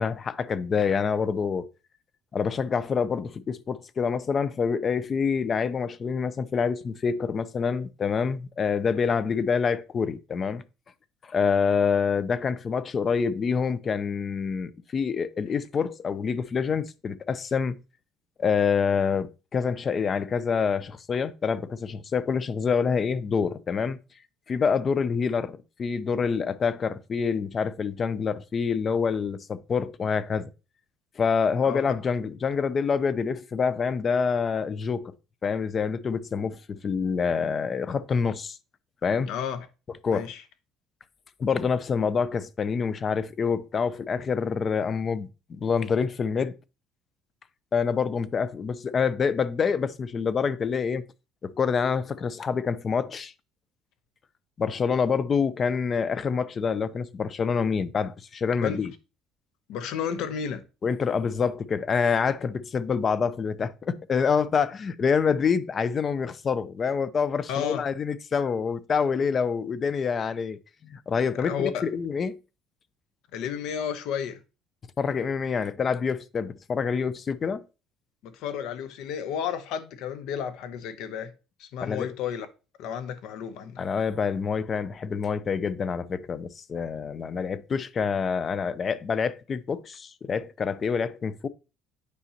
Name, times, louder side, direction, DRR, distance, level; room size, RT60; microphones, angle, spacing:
voice 1, 0.0-1.7 2.3-10.6 11.2-17.8 18.4-24.0 24.5-30.5 31.2-35.1 35.4-38.6 39.0-39.3 40.0-40.3 41.4-46.5 47.7-51.0 51.4-53.3 54.6-58.9 60.8-72.4 75.0-77.6 81.8-82.1 83.8-91.5, left 6 dB, 30° left, 0.4 m, -26 dB
voice 2, 39.3-39.7 40.1-40.4 58.6-58.8 59.7-60.6 67.5-67.9 71.4-71.8 73.3-74.4 78.2-81.3 81.6-82.5 82.8-83.9, left 8 dB, 70° left, 0.8 m, -32 dB
8.4 x 5.1 x 2.9 m
cardioid pair, 135°, 0 cm